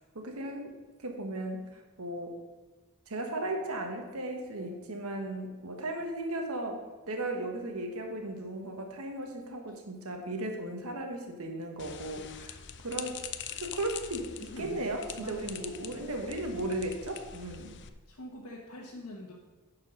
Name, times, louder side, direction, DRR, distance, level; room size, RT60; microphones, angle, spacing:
voice 1, 0.1-0.8 1.0-2.4 3.1-12.6 12.8-13.2 13.5-17.7, right 1 dB, 70° right, 3 dB, 1.3 m, -36 dB
sound 1, 11.8-17.9, left 8 dB, 55° left, 0.6 m, -44 dB
voice 2, 14.4-14.8 15.2-15.6 18.0-19.3, left 1 dB, 75° left, -4 dB, 1.3 m, -44 dB
10.0 x 4.7 x 6.3 m, 1.3 s
head